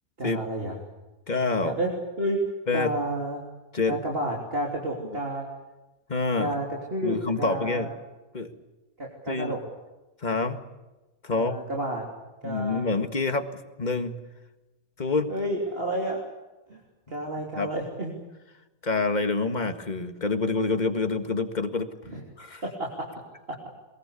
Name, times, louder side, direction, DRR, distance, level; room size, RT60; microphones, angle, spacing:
voice 1, 0.2-0.8 1.6-1.9 2.2-2.4 2.7-3.4 3.9-5.5 6.4-7.9 9.0-9.6 11.3-12.0 12.4-12.8 15.3-16.2 16.7-16.8 17.1-18.1 22.1-22.2 22.6-23.1, right 1 dB, 35° right, -2 dB, 3.6 m, -30 dB
voice 2, 1.3-1.8 2.7-2.9 3.7-3.9 5.0-5.2 6.1-6.6 7.0-7.9 8.3-8.5 9.3-9.6 10.2-10.6 11.2-11.5 12.4-13.4 13.8-14.1 15.0-15.3 17.6-17.7 18.8-21.9 22.4-22.6, left 3 dB, 25° left, 7 dB, 1.8 m, -27 dB
22.5 x 22.0 x 8.4 m, 1.1 s
omnidirectional pair, 1.8 m